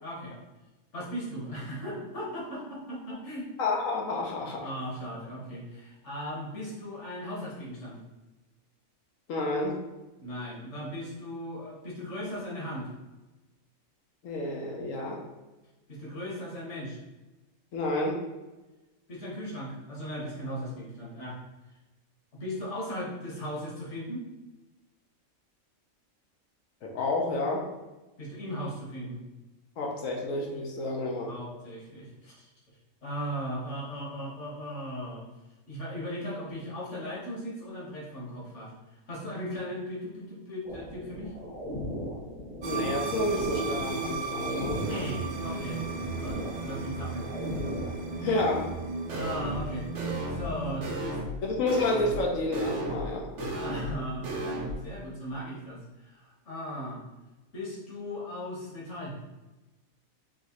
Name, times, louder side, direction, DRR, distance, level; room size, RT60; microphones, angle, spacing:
voice 1, 0.0-0.4 0.9-3.5 4.4-8.0 10.2-12.9 15.9-17.0 19.1-21.4 22.3-24.2 28.2-29.2 31.3-32.5 33.0-35.3 35.7-41.3 44.8-47.3 49.1-49.9 50.3-51.2 53.5-57.0 57.5-59.2, equal, 60° left, -5 dB, 1.6 m, -37 dB
voice 2, 3.6-4.7 9.3-9.8 14.2-15.2 17.7-18.2 26.8-27.6 29.8-31.3 42.6-44.8 48.2-48.7 51.4-53.5, left 2 dB, 75° left, -1 dB, 1.2 m, -30 dB
sound 1, 40.6-48.9, left 1 dB, 40° left, 0.9 m, -38 dB
sound 2, 42.6-50.8, right 4 dB, 85° right, 0.4 m, -35 dB
sound 3, 49.1-49.7 50.0-50.5 50.8-51.4 51.7-52.2 52.5-53.1 53.4-54.0 54.2-54.7, right 1 dB, 65° right, 1.2 m, -34 dB
4.6 x 3.1 x 3.0 m, 1.1 s
omnidirectional pair, 1.4 m